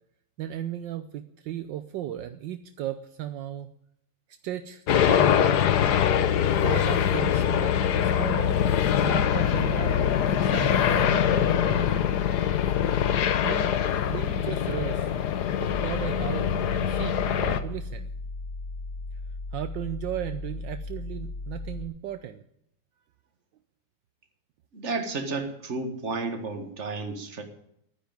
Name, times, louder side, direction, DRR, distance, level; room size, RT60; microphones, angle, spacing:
voice 1, 0.4-3.7 4.4-5.4 6.6-8.6 9.0-12.0 13.4-13.8 14.0-15.1 15.6-16.5 16.8-18.1 19.5-22.4, right 11 dB, 75° right, 10 dB, 1.3 m, -36 dB
sound 1, 4.9-17.6, left 9 dB, 65° left, 1.3 m, -23 dB
sound 2, 15.7-21.8, left 2 dB, 85° left, 5.0 m, -36 dB
voice 2, 24.7-27.4, right 3 dB, 40° right, 6 dB, 1.8 m, -32 dB
11.5 x 9.8 x 9.1 m, 0.75 s
omnidirectional pair, 2.1 m